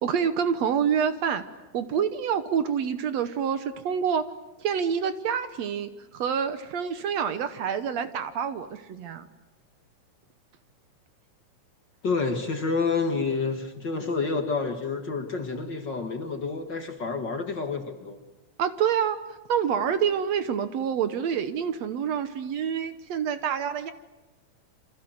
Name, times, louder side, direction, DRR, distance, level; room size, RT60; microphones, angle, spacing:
voice 1, 0.0-1.4 1.7-4.2 4.6-9.2 18.6-23.9, right 7 dB, 65° right, 11 dB, 2.1 m, -27 dB
voice 2, 12.0-18.2, left 4 dB, 40° left, 5 dB, 2.1 m, -29 dB
28.5 x 25.5 x 7.9 m, 1.1 s
omnidirectional pair, 3.5 m